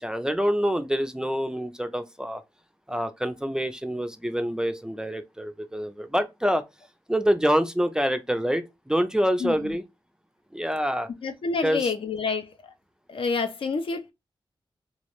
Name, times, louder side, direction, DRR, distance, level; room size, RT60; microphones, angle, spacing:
voice 1, 0.0-2.4 2.9-6.6 7.1-9.8 10.5-11.1 11.6-11.9, equal, 5° right, 0.3 m, -26 dB
voice 2, 9.4-9.8 11.2-12.7 13.1-14.1, left 4 dB, 65° left, 0.4 m, -28 dB
2.3 x 2.1 x 2.9 m
cardioid pair, 60°, 10 cm